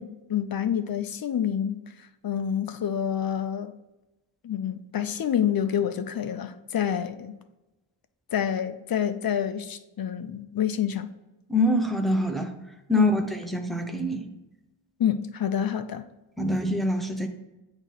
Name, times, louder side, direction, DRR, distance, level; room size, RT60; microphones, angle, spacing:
voice 1, 0.0-3.7 4.4-7.3 8.3-11.1 12.9-13.2 15.0-16.1 16.5-16.6, left 9 dB, 50° left, 0.5 m, -28 dB
voice 2, 11.5-12.5 12.9-14.3 16.4-17.3, left 1 dB, ahead, 0.5 m, -25 dB
8.4 x 3.0 x 4.5 m
wide cardioid pair, 175°, 48 cm